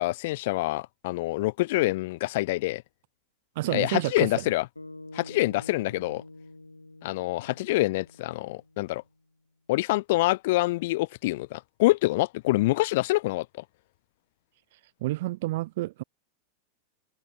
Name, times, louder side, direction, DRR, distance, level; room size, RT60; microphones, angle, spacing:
voice 1, 0.0-2.8 3.7-4.7 5.1-6.2 7.0-9.0 9.7-13.5, left 19 dB, 50° left, 1.5 m, -26 dB
voice 2, 3.5-4.4 15.0-16.0, right 18 dB, 50° right, 1.5 m, -29 dB
sound 1, 4.7-9.1, left 2 dB, 85° left, 5.3 m, -47 dB
figure-of-eight pair, 90°, 0 cm